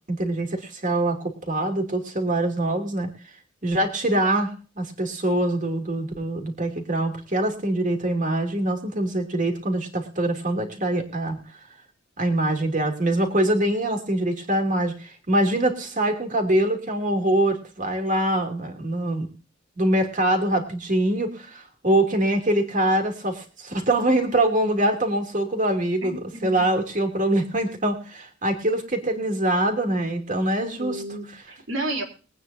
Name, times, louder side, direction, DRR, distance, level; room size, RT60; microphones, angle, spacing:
voice 1, 0.1-3.1 3.6-11.4 12.2-19.3 19.8-31.0, right 1 dB, 40° right, 4 dB, 3.0 m, -24 dB
voice 2, 26.0-26.7 30.8-32.0, right 1 dB, 80° right, 2 dB, 4.1 m, -32 dB
22.5 x 9.3 x 2.8 m, 0.37 s
head